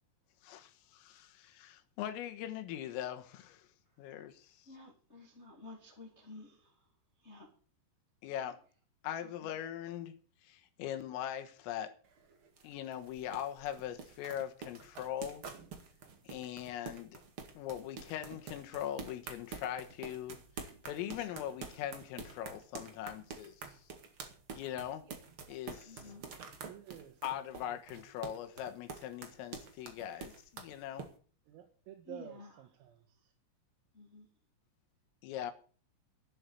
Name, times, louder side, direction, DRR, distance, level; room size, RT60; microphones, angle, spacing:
voice 1, 0.4-3.7 4.0-4.7 8.2-8.6 9.0-10.1 10.5-11.9 12.6-15.4 16.3-17.2 17.6-20.4 20.9-23.6 24.5-25.0 25.5-26.1 27.2-31.1 35.2-35.5, left 11 dB, 85° left, 4.0 m, -41 dB
voice 2, 4.7-6.8 7.2-7.5 9.2-9.6 25.8-26.3 32.0-32.6 33.9-34.3, left 2 dB, 15° left, 2.4 m, -52 dB
sound 1, 12.0-31.1, right 5 dB, 60° right, 1.3 m, -47 dB
voice 3, 26.0-27.4 27.7-28.0 31.5-33.3, right 11 dB, 85° right, 4.1 m, -53 dB
11.5 x 10.0 x 8.1 m
omnidirectional pair, 5.9 m